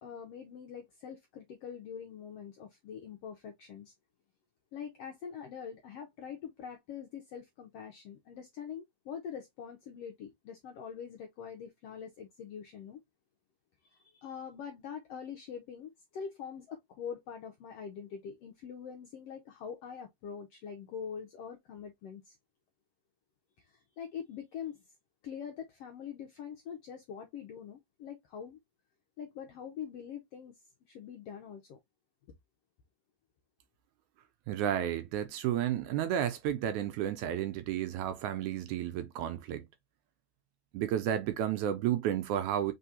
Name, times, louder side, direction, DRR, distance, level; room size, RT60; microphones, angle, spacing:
voice 1, 0.0-3.9 4.7-13.0 13.8-22.4 23.6-24.9 25.2-28.6 29.2-30.5 30.9-31.8, left 7 dB, 80° left, 1.4 m, -44 dB
voice 2, 34.5-39.6 40.7-42.7, right 10 dB, 80° right, 1.9 m, -32 dB
4.4 x 3.7 x 2.7 m
omnidirectional pair, 3.7 m